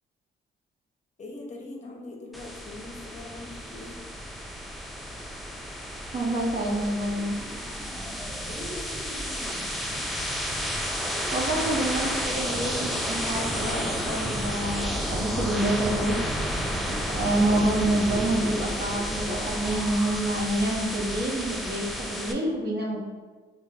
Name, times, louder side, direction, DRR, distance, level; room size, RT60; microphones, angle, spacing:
voice 1, 1.2-4.0 8.5-9.2 16.6-17.0, left 2 dB, 35° left, 0 dB, 0.7 m, -42 dB
sound 1, 2.3-22.3, equal, ahead, 0.4 m, -31 dB
voice 2, 6.1-7.4 11.3-16.2 16.4-16.6 17.1-23.0, right 1 dB, 55° right, -3 dB, 1.0 m, -27 dB
5.0 x 2.3 x 2.3 m, 1.4 s
cardioid pair, 90°, 20 cm